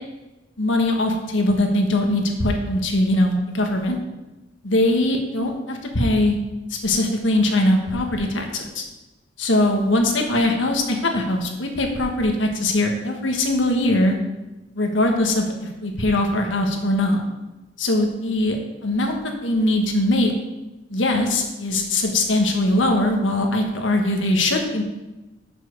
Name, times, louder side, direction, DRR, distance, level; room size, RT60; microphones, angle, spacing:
voice 1, 0.6-4.0 4.6-6.4 6.8-8.8 9.4-14.1 14.8-17.2 17.8-18.6 18.8-19.2 19.4-20.3 20.9-24.8, left 1 dB, 80° left, 3 dB, 1.4 m, -21 dB
7.0 x 6.0 x 6.5 m, 1.1 s
head